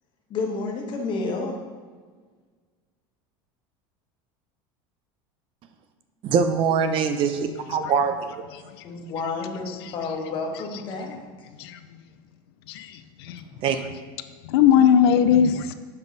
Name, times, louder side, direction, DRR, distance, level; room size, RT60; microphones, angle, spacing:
voice 1, 0.3-1.6 8.8-11.2, left 3 dB, 40° left, 1 dB, 1.3 m, -30 dB
voice 2, 6.2-8.3 13.6-13.8, right 6 dB, 45° right, 8 dB, 0.6 m, -23 dB
voice 3, 8.5-8.8 9.8-9.9 11.6-12.0 12.7-13.4 14.4-15.7, left 8 dB, 85° left, 10 dB, 0.4 m, -20 dB
7.0 x 5.4 x 4.0 m, 1.5 s
supercardioid pair, 125°, 13 cm